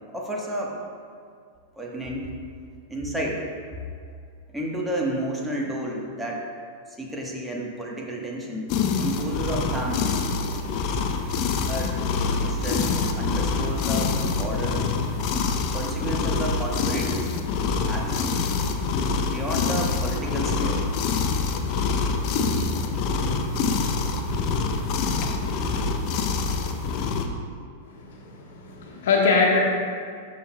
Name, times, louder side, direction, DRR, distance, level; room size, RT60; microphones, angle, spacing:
voice 1, 0.1-0.8 1.8-2.3 2.9-3.4 4.5-6.4 6.9-8.7 9.0-10.2 11.7-12.0 12.4-14.8 15.7-17.3 17.9-18.3 19.3-20.8, right 1 dB, 5° right, -2 dB, 1.2 m, -31 dB
sound 1, 8.7-27.3, left 4 dB, 40° left, 0.6 m, -25 dB
voice 2, 27.9-29.6, left 4 dB, 60° left, -2 dB, 1.3 m, -23 dB
12.5 x 6.1 x 2.3 m, 2.2 s
figure-of-eight pair, 95°, 0 cm